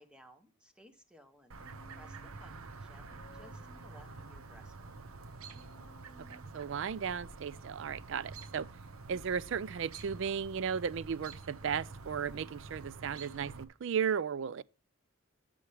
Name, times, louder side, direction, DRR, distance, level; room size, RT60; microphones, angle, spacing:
voice 1, 0.0-5.0, equal, 5° right, 1.0 m, -60 dB
Chirp tweet, 1.5-13.6, right 3 dB, 80° right, 0.9 m, -48 dB
Human voice, 1.6-2.5 3.1-4.6 5.5-6.8, left 1 dB, 40° left, 1.4 m, -59 dB
voice 2, 6.2-8.7 9.1-14.6, right 7 dB, 60° right, 0.4 m, -35 dB
13.0 x 6.9 x 3.4 m
head